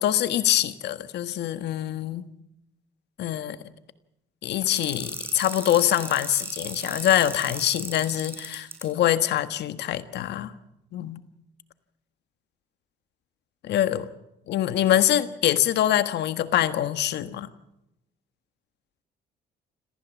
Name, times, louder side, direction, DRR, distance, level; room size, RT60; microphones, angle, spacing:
voice 1, 0.0-2.3 3.2-3.6 4.4-10.5 10.9-11.2 13.6-14.1 14.5-17.5, left 12 dB, 70° left, 12 dB, 1.5 m, -24 dB
sound 1, 4.7-8.8, right 2 dB, 10° right, 6.1 m, -35 dB
27.0 x 14.5 x 7.3 m, 0.87 s
cardioid pair, 95°, 18 cm